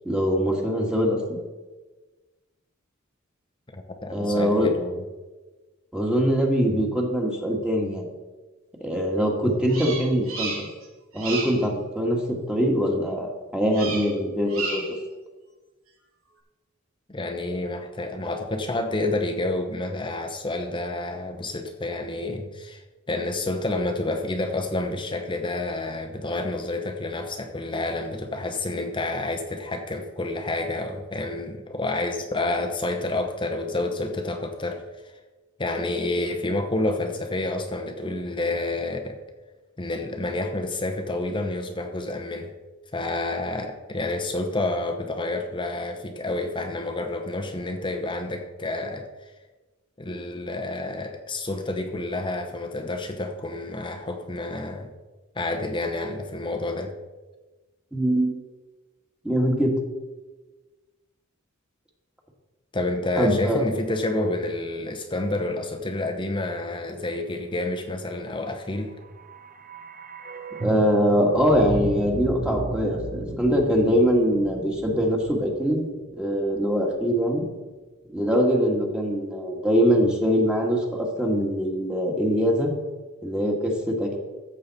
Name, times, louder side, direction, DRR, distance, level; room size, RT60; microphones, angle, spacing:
voice 1, 0.0-1.4 4.1-4.7 5.9-8.1 8.8-10.7 11.1-14.8 57.9-58.3 59.2-59.7 63.2-63.6 70.6-75.8 76.1-77.5 78.1-82.7 83.2-84.2, equal, 5° right, -1 dB, 1.8 m, -23 dB
voice 2, 3.7-5.0 17.1-35.1 35.6-39.2 39.8-42.5 42.9-49.3 50.0-54.9 55.3-56.9 62.7-69.0, left 2 dB, 25° left, 3 dB, 0.9 m, -29 dB
Bird vocalization bird call bird song, 9.7-10.8 11.1-11.6 13.7-14.2 14.5-15.0, right 4 dB, 90° right, 3.0 m, -32 dB
sound 1, 68.9-77.0 77.3-77.4, right 2 dB, 45° right, 0.9 m, -35 dB
14.0 x 7.7 x 4.2 m, 1.2 s
head